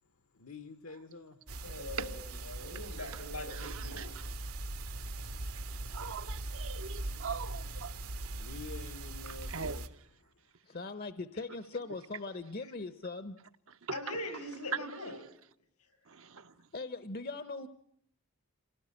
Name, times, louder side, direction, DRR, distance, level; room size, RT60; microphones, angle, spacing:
voice 1, 0.4-1.3 8.3-9.8, left 3 dB, 65° left, 1.2 m, -47 dB
sound 1, 1.5-9.9, right 2 dB, 80° right, 1.8 m, -40 dB
voice 2, 1.6-4.2 12.6-12.7 13.9-15.2, left 1 dB, 85° left, 7.2 m, -42 dB
voice 3, 3.5-4.1 5.9-7.9 9.3-9.8 16.2-16.4, right 5 dB, 65° right, 1.0 m, -41 dB
voice 4, 10.6-13.4 16.7-17.7, left 3 dB, 40° left, 0.9 m, -40 dB
27.5 x 18.0 x 9.8 m
head